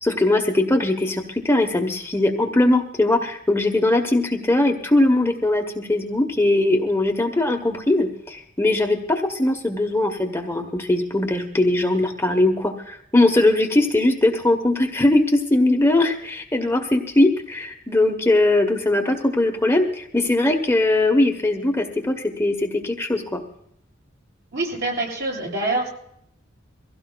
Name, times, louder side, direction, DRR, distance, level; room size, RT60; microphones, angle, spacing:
voice 1, 0.0-23.4, left 2 dB, 15° left, 3 dB, 0.9 m, -20 dB
voice 2, 24.5-25.9, right 2 dB, 60° right, -3 dB, 7.7 m, -25 dB
23.5 x 16.5 x 2.2 m, 0.72 s
head